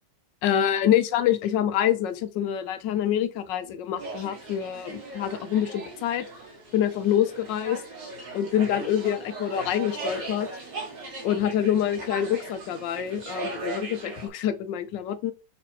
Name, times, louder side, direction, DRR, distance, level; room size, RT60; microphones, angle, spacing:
voice 1, 0.4-6.3 6.7-7.8 8.3-10.5 11.2-15.3, left 10 dB, 85° left, 1.4 m, -26 dB
sound 1, 4.0-14.3, right 3 dB, 75° right, 2.6 m, -38 dB
5.4 x 4.3 x 4.1 m
omnidirectional pair, 1.9 m